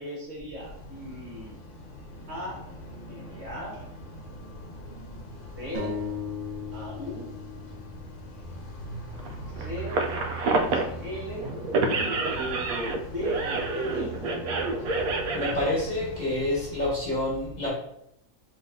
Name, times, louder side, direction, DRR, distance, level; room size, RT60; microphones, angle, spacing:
voice 1, 0.0-1.6 2.3-2.6 3.1-3.8 5.5-6.0 6.7-7.3 9.5-10.0 10.7-11.5 13.1-13.4 13.7-14.1, equal, 50° right, -5 dB, 1.7 m, -37 dB
sound 1, 0.6-16.9, right 1 dB, 65° left, 1.1 m, -42 dB
sound 2, 5.7-9.4, left 4 dB, 30° right, 1.0 m, -37 dB
sound 3, 9.2-10.9 11.4-15.5, right 3 dB, 85° right, 1.1 m, -28 dB
voice 2, 15.3-17.7, left 1 dB, 30° left, -6 dB, 1.4 m, -28 dB
5.3 x 3.2 x 2.6 m, 0.75 s
omnidirectional pair, 1.5 m